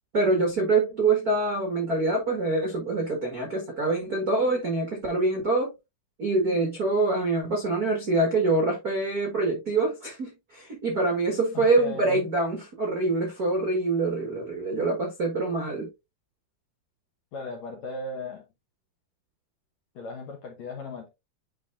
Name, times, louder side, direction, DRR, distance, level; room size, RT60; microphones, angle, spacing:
voice 1, 0.1-5.7 6.2-15.9, right 2 dB, 80° right, 0.8 m, -25 dB
voice 2, 11.5-12.2 17.3-18.4 19.9-21.1, left 3 dB, 70° left, 1.6 m, -37 dB
10.0 x 3.8 x 2.5 m
omnidirectional pair, 4.5 m